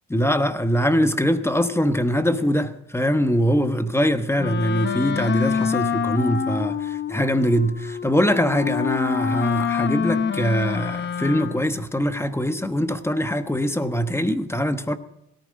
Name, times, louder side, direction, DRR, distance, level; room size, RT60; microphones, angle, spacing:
voice 1, 0.1-15.0, equal, 10° left, 1.1 m, -22 dB
Wind instrument woodwind instrument, 4.4-11.8, left 7 dB, 35° left, 0.8 m, -26 dB
18.0 x 13.5 x 3.8 m
cardioid pair, 90°, 30 cm